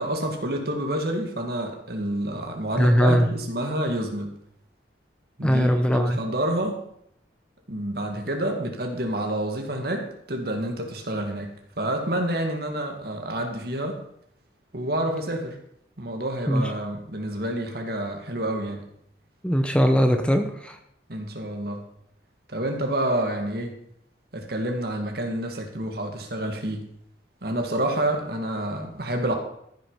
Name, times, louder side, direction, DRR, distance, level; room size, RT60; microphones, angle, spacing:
voice 1, 0.0-4.3 5.4-6.8 7.7-14.0 14.7-15.6 16.0-18.9 21.1-21.8 22.5-23.7 24.3-26.9 27.4-29.3, right 1 dB, 55° right, 4 dB, 2.0 m, -28 dB
voice 2, 2.8-3.2 5.4-6.2 16.5-16.6 19.4-20.7, equal, 5° left, 5 dB, 0.7 m, -20 dB
14.0 x 6.4 x 5.7 m, 0.72 s
head